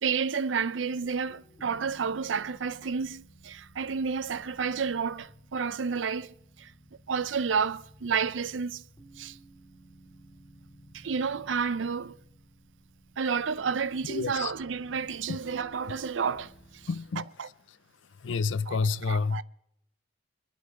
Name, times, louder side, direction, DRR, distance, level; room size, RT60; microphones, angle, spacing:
voice 1, 0.0-6.7 7.1-8.8 9.2-9.4 10.9-12.2 13.2-16.8 17.2-17.5 18.7-18.8 19.1-19.4, right 6 dB, 85° right, 0.5 m, -30 dB
sound 1, 1.0-17.0, equal, 15° left, 2.5 m, -55 dB
voice 2, 14.0-14.5 15.3-15.4 16.9-17.3 18.2-19.4, left 4 dB, 80° left, 0.5 m, -29 dB
22.5 x 11.5 x 4.7 m
head